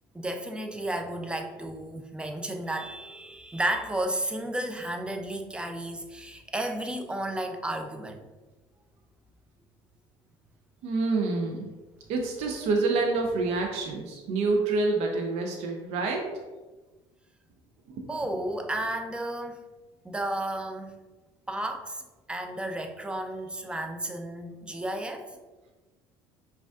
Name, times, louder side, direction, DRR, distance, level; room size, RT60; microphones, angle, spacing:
voice 1, 0.1-8.2 18.1-19.6 20.0-20.9 21.5-22.0 22.3-25.3, right 1 dB, 10° right, 5 dB, 0.4 m, -33 dB
voice 2, 10.8-11.7 12.1-16.2 17.9-18.1, right 3 dB, 70° right, 2 dB, 0.5 m, -27 dB
5.0 x 2.4 x 2.3 m, 1.2 s
cardioid pair, 100°, 12 cm